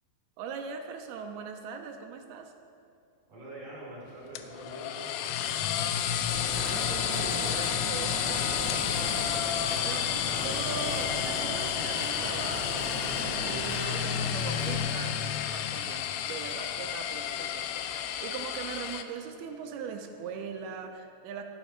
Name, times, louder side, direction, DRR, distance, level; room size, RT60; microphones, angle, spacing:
voice 1, 0.4-2.5 6.6-9.5 9.8-12.9 13.4-21.4, right 6 dB, 75° right, 5 dB, 2.3 m, -40 dB
voice 2, 3.3-6.3 10.0-10.8, right 1 dB, 50° right, -4 dB, 5.0 m, -46 dB
sound 1, 4.4-19.0, left 10 dB, 80° left, 2.4 m, -31 dB
sound 2, 6.3-14.8, equal, 25° left, 3.0 m, -37 dB
sound 3, 7.5-20.8, left 1 dB, 65° left, 3.4 m, -49 dB
13.5 x 10.5 x 5.1 m, 2.5 s
omnidirectional pair, 5.1 m